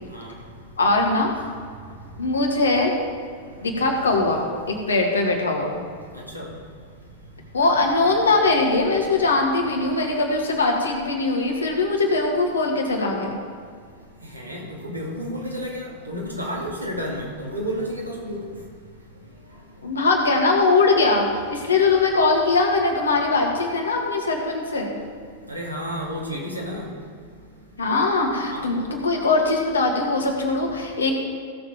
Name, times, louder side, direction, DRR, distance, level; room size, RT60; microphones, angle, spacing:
voice 1, 0.8-1.3 2.2-2.9 3.6-5.8 7.5-13.4 19.8-24.9 27.8-31.1, left 3 dB, 75° left, 1 dB, 2.1 m, -21 dB
voice 2, 14.3-18.5 25.5-26.9 28.5-28.6, equal, 90° right, -4 dB, 2.8 m, -31 dB
16.5 x 7.1 x 5.1 m, 2.1 s
figure-of-eight pair, 90°, 0 cm